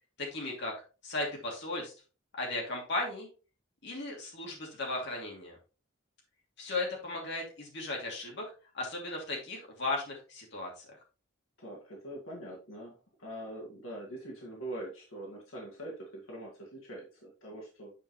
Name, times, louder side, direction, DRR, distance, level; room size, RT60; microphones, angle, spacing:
voice 1, 0.2-0.7 1.0-1.9 2.4-3.3 3.8-5.6 6.6-8.4 8.7-10.9, left 2 dB, 60° left, -1 dB, 2.7 m, -36 dB
voice 2, 11.6-17.9, right 1 dB, 85° left, -2 dB, 2.1 m, -43 dB
8.8 x 5.5 x 3.1 m, 0.34 s
head